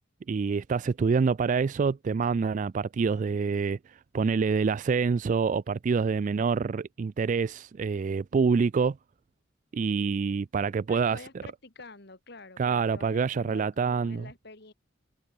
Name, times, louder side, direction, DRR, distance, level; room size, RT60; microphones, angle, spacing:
voice 1, 0.3-3.8 4.1-9.0 9.7-11.2 12.6-14.3, right 5 dB, 40° right, 0.3 m, -26 dB
voice 2, 10.9-14.7, left 3 dB, 60° left, 2.6 m, -48 dB
head